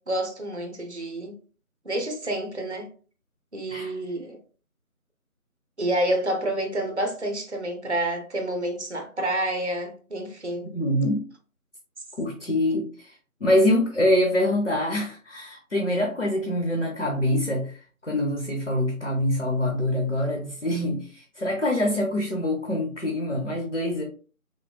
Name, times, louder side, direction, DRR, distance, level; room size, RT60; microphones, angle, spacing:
voice 1, 0.0-1.3 1.9-2.9 3.5-4.4 5.8-10.7, right 1 dB, 50° right, 0.5 m, -28 dB
voice 2, 10.7-11.2 12.2-24.0, left 1 dB, 55° left, 0.5 m, -25 dB
3.4 x 2.2 x 2.2 m
figure-of-eight pair, 180°, 44 cm